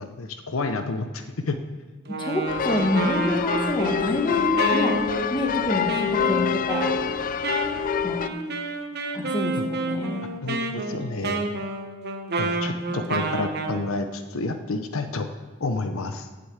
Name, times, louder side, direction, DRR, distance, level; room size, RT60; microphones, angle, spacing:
voice 1, 0.0-1.6 9.6-9.7 10.4-11.5 12.4-15.3 15.6-16.3, left 3 dB, 80° left, 7 dB, 0.8 m, -29 dB
Wind instrument woodwind instrument, 2.1-13.8, right 2 dB, 55° right, 1.2 m, -30 dB
voice 2, 2.2-4.9 5.3-6.9 8.0-8.3 9.1-10.2 12.9-13.0, left 1 dB, 25° left, 2 dB, 1.7 m, -27 dB
sound 1, 2.5-8.3, left 8 dB, 40° left, 0.4 m, -26 dB
9.0 x 7.8 x 8.1 m, 1.3 s
head